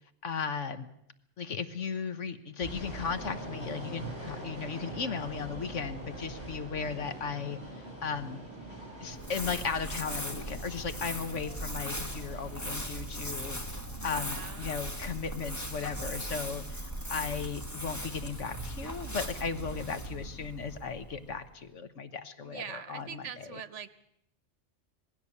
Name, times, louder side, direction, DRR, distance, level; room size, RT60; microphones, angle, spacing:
voice 1, 0.2-0.9 1.4-8.4 9.0-13.6 14.0-23.6, left 5 dB, 85° left, 11 dB, 1.5 m, -36 dB
sound 1, 2.6-20.2, right 1 dB, 20° right, 7.9 m, -45 dB
Crumpling crinkling, 9.1-21.5, equal, 15° left, 1.6 m, -39 dB
voice 2, 13.9-14.7 22.4-23.9, right 7 dB, 75° right, 14 dB, 1.3 m, -43 dB
19.5 x 16.0 x 8.4 m, 0.74 s
omnidirectional pair, 1.2 m